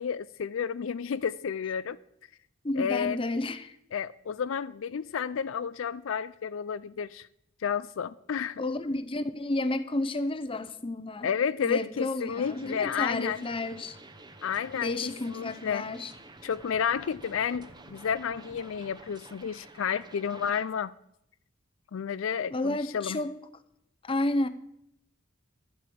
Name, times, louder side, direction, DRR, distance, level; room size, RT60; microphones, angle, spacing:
voice 1, 0.0-2.0 2.8-3.2 3.9-7.3 7.6-8.6 11.2-13.4 14.4-15.9 16.4-20.9 21.9-23.2, left 7 dB, 75° left, 0.4 m, -31 dB
voice 2, 2.6-3.8 8.6-11.3 11.6-14.0 14.8-16.1 22.5-23.3 24.0-24.5, left 2 dB, 25° left, 0.7 m, -31 dB
sound 1, 12.3-20.6, right 2 dB, 20° right, 0.9 m, -50 dB
12.5 x 8.3 x 7.6 m
head